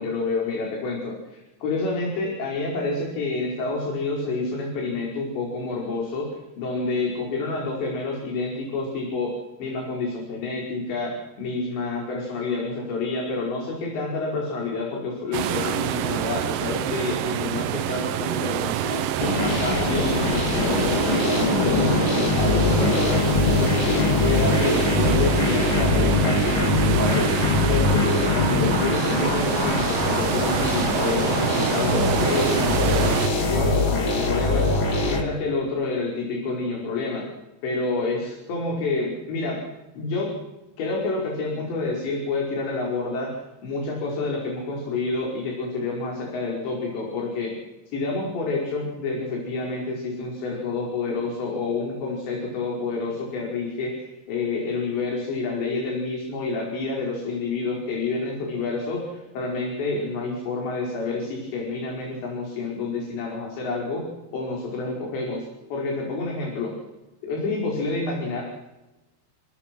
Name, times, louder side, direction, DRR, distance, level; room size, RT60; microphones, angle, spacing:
voice 1, 0.0-9.3 9.6-22.0 22.4-23.3 23.6-37.3 37.6-39.6 39.9-40.3 40.8-43.4 43.6-47.6 47.9-65.5 65.7-66.7 67.2-68.4, left 3 dB, 70° left, -1 dB, 7.4 m, -28 dB
sound 1, 15.3-33.3, right 12 dB, 80° right, 2.0 m, -27 dB
sound 2, 19.2-35.2, left 2 dB, 30° left, 3.6 m, -22 dB
28.0 x 28.0 x 6.3 m, 1.0 s
omnidirectional pair, 5.3 m